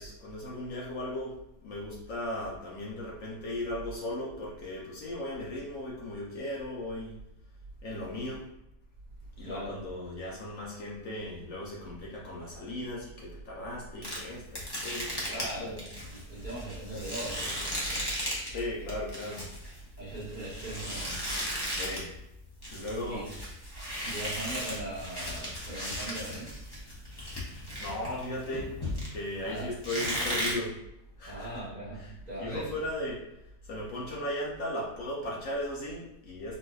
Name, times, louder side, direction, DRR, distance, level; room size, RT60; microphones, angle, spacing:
voice 1, 0.0-1.4 1.6-7.2 7.8-8.4 9.4-15.8 18.5-19.4 21.7-22.1 22.7-23.3 27.8-28.7 29.1-30.8 31.2-31.5 32.0-32.1 32.4-33.2 33.6-36.6, left 1 dB, 65° left, -4 dB, 1.0 m, -37 dB
voice 2, 9.4-9.8 15.3-18.3 20.0-21.3 23.0-23.3 24.0-26.6 29.4-29.7 31.2-32.7, right 1 dB, 35° right, -9 dB, 0.8 m, -40 dB
sound 1, 14.0-18.6 18.9-22.1 22.4-29.4 29.8-30.5, equal, 30° left, 0.4 m, -36 dB
4.0 x 2.4 x 2.3 m, 0.82 s
omnidirectional pair, 1.7 m